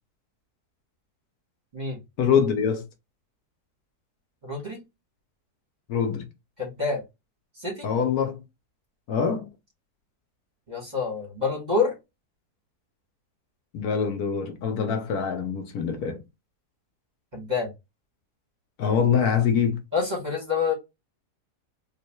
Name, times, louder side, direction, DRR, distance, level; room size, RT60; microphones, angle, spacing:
voice 1, 2.2-2.8 5.9-6.3 7.8-8.4 9.1-9.5 13.7-16.2 18.8-19.8, left 7 dB, 75° left, 1.2 m, -24 dB
voice 2, 4.4-4.8 6.6-7.0 7.6-7.9 10.7-11.9 17.3-17.7 19.9-20.7, left 4 dB, 30° right, 1.5 m, -27 dB
4.6 x 2.9 x 2.2 m
omnidirectional pair, 1.7 m